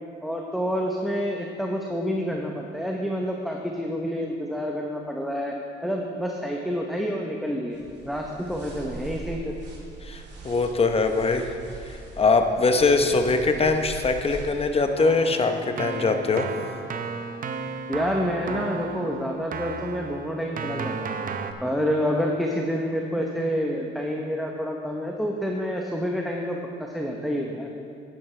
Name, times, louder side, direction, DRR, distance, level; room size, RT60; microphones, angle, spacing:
voice 1, 0.2-5.5 5.8-7.8 8.0-9.6 17.9-21.1 21.6-27.7, equal, ahead, 0 dB, 0.9 m, -28 dB
sound 1, 7.7-14.7, right 3 dB, 60° right, 2.5 m, -41 dB
voice 2, 10.0-11.5 12.2-16.5, left 3 dB, 30° left, 6 dB, 0.9 m, -22 dB
Keyboard (musical), 15.0-21.5, right 5 dB, 45° right, 0.7 m, -34 dB
10.5 x 10.5 x 3.3 m, 2.6 s
cardioid pair, 90°, 20 cm